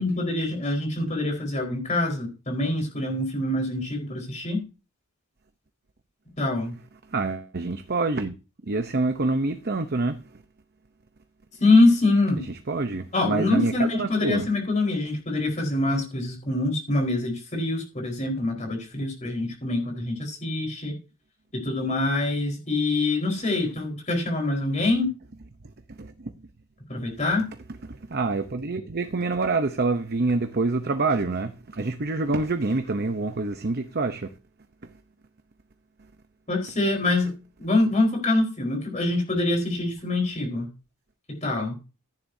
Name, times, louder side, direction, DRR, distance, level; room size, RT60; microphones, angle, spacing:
voice 1, 0.0-4.6 6.4-6.7 11.6-12.4 13.1-20.9 21.6-25.1 26.9-27.4 36.5-37.3 37.6-40.7 41.4-41.8, left 2 dB, 30° left, 4.5 m, -24 dB
voice 2, 7.1-8.3 8.6-10.4 12.4-14.5 25.9-26.3 27.8-34.3, right 3 dB, 45° right, 0.8 m, -26 dB
15.0 x 10.0 x 2.8 m
head